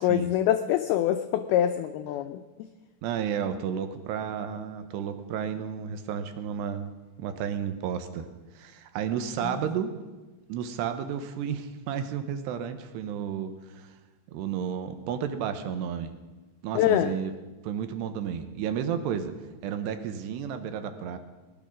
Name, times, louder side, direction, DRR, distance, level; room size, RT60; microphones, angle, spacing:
voice 1, 0.0-2.4 9.4-9.6 16.8-17.1, left 11 dB, 90° left, 9 dB, 2.2 m, -25 dB
voice 2, 3.0-6.9 7.2-8.3 8.6-9.9 10.5-13.9 14.3-16.1 16.6-17.3 17.6-19.3 19.6-21.2, right 8 dB, 80° right, 9 dB, 2.9 m, -32 dB
19.0 x 10.5 x 6.2 m, 1.2 s
omnidirectional pair, 5.1 m